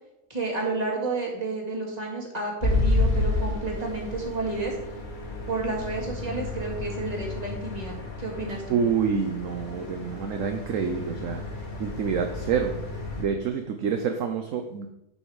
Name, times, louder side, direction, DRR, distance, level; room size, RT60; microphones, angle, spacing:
voice 1, 0.3-4.8 5.5-8.8, right 3 dB, 25° right, -1 dB, 2.0 m, -31 dB
sound 1, 2.6-13.2, left 2 dB, 35° left, 1.2 m, -31 dB
voice 2, 8.7-12.8 13.2-14.9, right 6 dB, 60° right, 5 dB, 1.0 m, -27 dB
10.0 x 5.6 x 4.8 m, 0.82 s
omnidirectional pair, 1.7 m